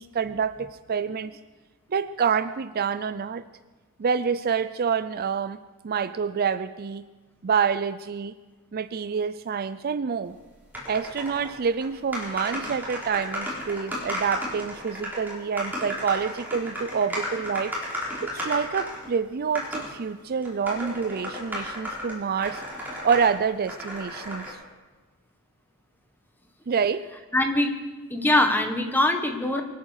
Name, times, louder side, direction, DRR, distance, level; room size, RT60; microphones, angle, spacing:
voice 1, 0.0-1.3 1.9-3.4 4.0-5.6 5.8-7.0 7.4-8.3 8.7-10.4 10.9-17.7 18.2-22.6 23.0-24.6 26.7-27.1, right 6 dB, 45° right, 14 dB, 0.4 m, -27 dB
sound 1, 10.7-11.5 11.8-11.9 12.1-19.1 19.5-19.9 20.4-23.3 23.6-24.5, equal, 10° right, 4.8 m, -33 dB
voice 2, 27.3-27.8 28.1-29.6, left 1 dB, 10° left, 5 dB, 1.5 m, -22 dB
24.0 x 9.4 x 6.5 m, 1.3 s
head